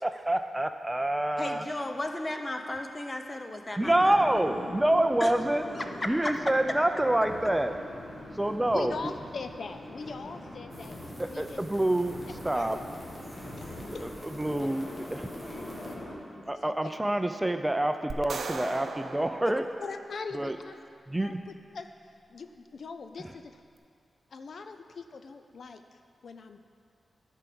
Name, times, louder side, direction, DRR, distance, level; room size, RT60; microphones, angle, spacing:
voice 1, 0.0-1.6 3.8-5.6 6.1-7.7 8.4-9.1 11.2-12.1 12.4-12.8 13.9-14.8 15.1-15.3 16.5-19.7 20.3-20.6 21.1-21.4, right 1 dB, 15° right, 8 dB, 0.4 m, -27 dB
voice 2, 1.4-4.3 5.2-5.3 5.7-6.3, left 1 dB, 30° left, 5 dB, 0.8 m, -35 dB
sound 1, 3.8-16.1, left 1 dB, 45° left, 2.3 m, -42 dB
voice 3, 8.7-11.0 11.3-11.6 12.5-12.9 13.6-13.7 13.9-14.0 15.9-16.9 19.8-20.7 21.2-21.9 22.3-23.6 24.3-26.6, left 4 dB, 70° left, 7 dB, 0.4 m, -41 dB
sound 2, 10.7-16.0, equal, 10° left, 1.5 m, -52 dB
sound 3, 18.1-20.5, right 4 dB, 80° right, 0.5 m, -39 dB
10.5 x 4.6 x 6.9 m, 2.3 s
cardioid pair, 70°, 0 cm